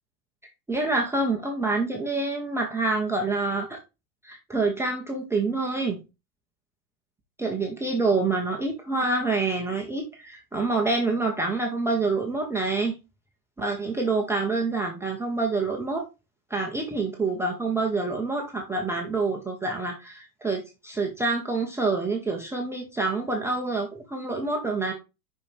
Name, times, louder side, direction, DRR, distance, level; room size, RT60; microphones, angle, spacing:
voice 1, 0.7-3.8 4.2-6.0 7.4-13.0 13.6-16.1 16.5-24.9, right 3 dB, 5° right, 0 dB, 0.8 m, -27 dB
5.5 x 5.2 x 3.3 m, 0.25 s
hypercardioid pair, 125°, 48 cm